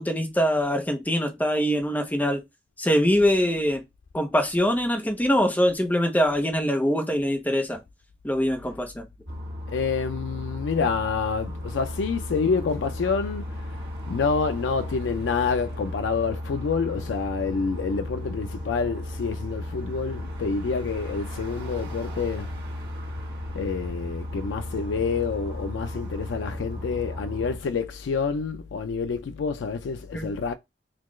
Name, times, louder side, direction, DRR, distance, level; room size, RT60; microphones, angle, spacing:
voice 1, 0.0-2.4 2.8-3.8 4.1-7.8 8.2-9.0 30.1-30.3, equal, 10° left, 0.7 m, -23 dB
sound 1, 9.3-27.6, left 1 dB, 65° right, 1.4 m, -35 dB
voice 2, 9.7-13.7 14.1-22.5 23.5-30.5, left 5 dB, 90° left, 0.4 m, -27 dB
4.0 x 2.3 x 3.0 m
head